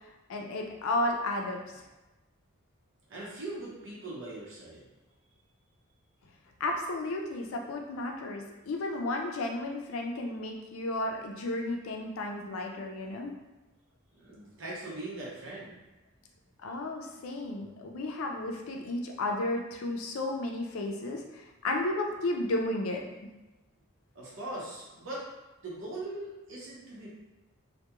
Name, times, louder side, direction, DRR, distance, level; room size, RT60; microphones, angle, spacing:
voice 1, 0.3-1.8 6.6-13.3 16.6-23.0, left 2 dB, 75° left, 1 dB, 0.4 m, -33 dB
voice 2, 3.1-4.9 14.1-15.7 24.1-25.3 25.6-27.1, right 2 dB, 60° right, -5 dB, 0.8 m, -40 dB
2.2 x 2.2 x 2.9 m, 1.1 s
head